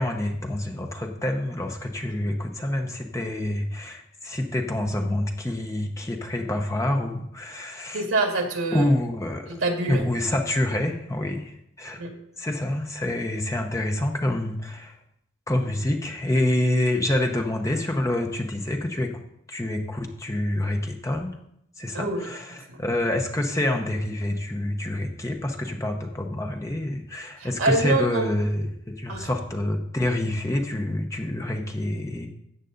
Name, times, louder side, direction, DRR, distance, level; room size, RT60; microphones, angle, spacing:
voice 1, 0.0-8.1 8.7-9.5 9.9-12.0 12.4-15.0 15.5-19.2 19.5-21.4 21.8-32.3, left 1 dB, 15° left, 3 dB, 0.9 m, -27 dB
voice 2, 7.9-8.9 9.5-10.0 12.0-12.1 21.9-22.8 27.4-28.3 29.1-29.3, right 2 dB, 80° right, 3 dB, 2.0 m, -26 dB
13.5 x 8.2 x 3.9 m, 0.77 s
head